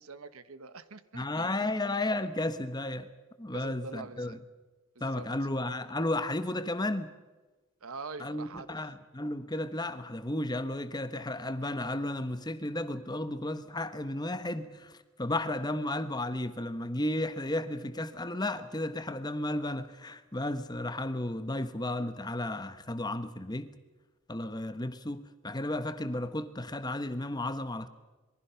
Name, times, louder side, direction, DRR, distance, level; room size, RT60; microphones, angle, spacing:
voice 1, 0.0-1.7 3.5-4.4 4.9-5.3 7.8-8.7, right 4 dB, 80° right, 1.3 m, -44 dB
voice 2, 1.1-3.1 3.4-4.4 5.0-7.1 8.2-23.7 24.3-27.9, left 1 dB, 20° left, 1.1 m, -33 dB
27.0 x 22.5 x 5.8 m
head